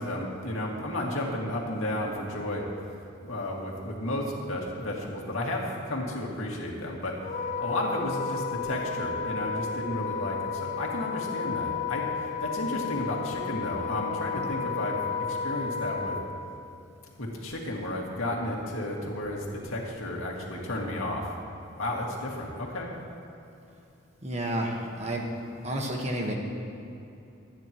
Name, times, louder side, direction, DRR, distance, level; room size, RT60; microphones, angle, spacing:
voice 1, 0.0-2.7 3.2-7.2 7.6-15.0 15.3-16.2 17.2-21.3 21.8-22.9, left 1 dB, 85° left, -2 dB, 2.2 m, -32 dB
Wind instrument woodwind instrument, 7.2-16.2, left 6 dB, 35° left, 0.6 m, -32 dB
voice 2, 24.2-25.3 25.6-26.4, right 1 dB, 35° right, 0 dB, 1.4 m, -30 dB
24.5 x 9.7 x 3.1 m, 2.8 s
head